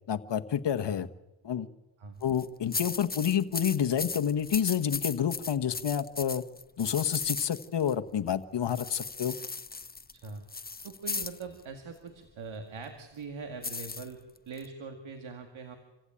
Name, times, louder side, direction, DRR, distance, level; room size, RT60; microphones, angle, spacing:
voice 1, 0.1-1.1 1.4-1.7 2.2-6.4 6.8-9.3, left 9 dB, 65° left, 7 dB, 1.3 m, -29 dB
sound 1, 2.2-2.5 2.7-7.9 8.7-11.4 13.6-14.7, left 4 dB, 20° left, 0.8 m, -37 dB
voice 2, 10.1-10.4 10.8-14.2 14.5-15.8, right 4 dB, 85° right, 5 dB, 2.2 m, -42 dB
26.5 x 15.5 x 8.9 m, 0.99 s
cardioid pair, 55°, 46 cm